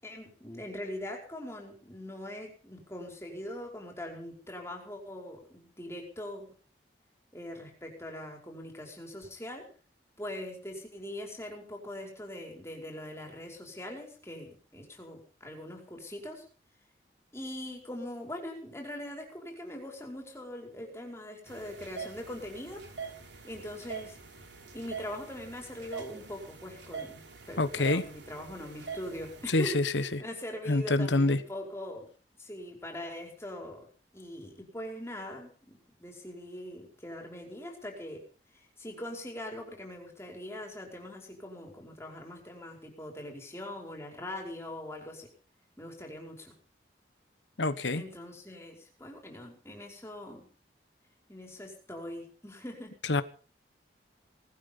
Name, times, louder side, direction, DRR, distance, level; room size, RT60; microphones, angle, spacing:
voice 1, 0.0-6.5 7.3-9.7 10.2-16.4 17.3-22.8 23.1-23.2 23.4-24.2 24.7-29.8 30.2-32.1 32.4-33.9 34.1-38.3 38.5-45.3 45.8-46.5 47.9-50.5 51.3-53.0, left 1 dB, 15° left, 5.1 m, -42 dB
sound 1, 21.5-29.5, right 5 dB, 70° right, 3.1 m, -44 dB
voice 2, 27.6-28.0 29.5-30.2 30.7-31.4 47.6-48.0 53.0-53.2, left 2 dB, 80° left, 1.2 m, -26 dB
19.5 x 13.0 x 5.4 m
head